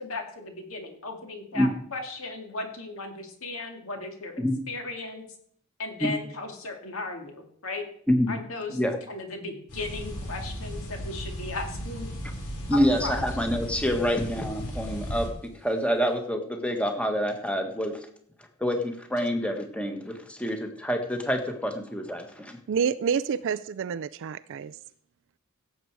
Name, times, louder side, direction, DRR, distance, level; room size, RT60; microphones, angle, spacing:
voice 1, 0.0-5.2 5.8-7.8 8.3-8.8 9.1-12.1 12.7-13.2, left 3 dB, 65° left, 2.4 m, -36 dB
sound 1, 9.7-15.3, equal, 90° left, 3.8 m, -36 dB
voice 2, 12.7-15.3 15.6-18.0 18.6-22.6, equal, 5° left, 1.4 m, -27 dB
voice 3, 22.7-24.8, right 7 dB, 60° right, 0.3 m, -28 dB
16.5 x 7.6 x 4.7 m
head